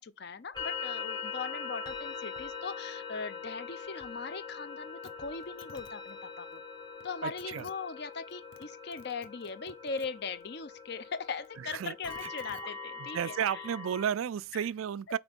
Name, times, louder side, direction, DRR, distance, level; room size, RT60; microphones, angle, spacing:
voice 1, 0.0-6.6 7.0-13.3 14.5-14.6, left 5 dB, 55° left, 0.6 m, -40 dB
sound 1, 0.5-14.1, left 5 dB, 20° left, 1.0 m, -42 dB
sound 2, 5.0-5.1 5.4-5.9 7.0-7.1 7.4-7.7 8.3-8.7 8.9-10.1 11.4-12.6 13.6-13.7, left 5 dB, 75° left, 0.9 m, -53 dB
voice 2, 7.2-7.7 11.6-11.9 13.0-15.2, right 8 dB, 80° right, 0.3 m, -33 dB
6.0 x 4.4 x 5.2 m
head